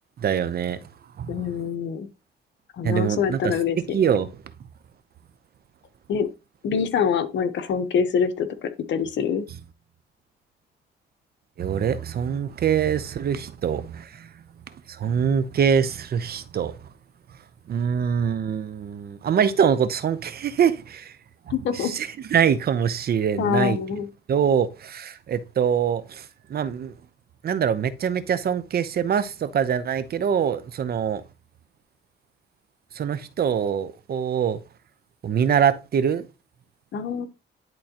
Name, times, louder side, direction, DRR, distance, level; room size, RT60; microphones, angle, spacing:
voice 1, 0.2-0.8 1.2-1.5 2.8-3.6 3.9-4.3 11.6-14.3 14.9-16.8 17.7-21.1 21.7-23.8 24.3-26.9 27.4-31.2 32.9-34.6 35.2-36.2, right 8 dB, 50° right, 0.7 m, -24 dB
voice 2, 1.3-2.1 2.7-4.0 6.1-6.3 6.6-9.5 21.5-21.9 23.4-24.1 36.9-37.3, left 7 dB, 65° left, 1.0 m, -25 dB
10.5 x 3.8 x 2.9 m
cardioid pair, 90°, 20 cm